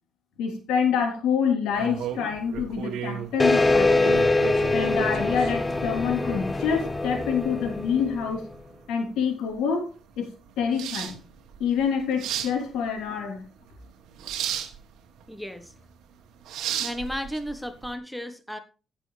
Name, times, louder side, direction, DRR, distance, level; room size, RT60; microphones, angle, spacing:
voice 1, 0.4-4.1 4.7-8.5 8.9-11.2 11.6-13.4, left 7 dB, 90° left, 3 dB, 3.3 m, -27 dB
sound 1, 1.7-17.9, right 9 dB, 85° right, 1.4 m, -36 dB
sound 2, 3.4-8.5, left 2 dB, 20° left, 0.7 m, -24 dB
voice 2, 15.3-15.7 16.8-18.6, equal, ahead, 8 dB, 1.2 m, -34 dB
16.0 x 6.7 x 3.3 m, 0.33 s
cardioid pair, 90°, 0 cm